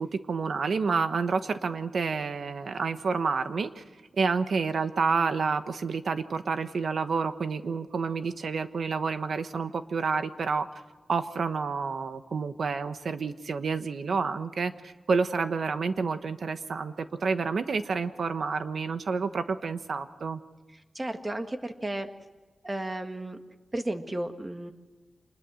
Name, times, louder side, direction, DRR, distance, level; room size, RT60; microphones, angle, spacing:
voice 1, 0.0-3.8 4.2-10.7 11.1-20.4, right 5 dB, 75° right, 10 dB, 1.2 m, -29 dB
voice 2, 20.9-22.1 22.6-23.4 23.7-24.7, right 1 dB, 25° right, 6 dB, 1.7 m, -33 dB
27.0 x 20.5 x 6.4 m, 1.3 s
wide cardioid pair, 110°, 0 cm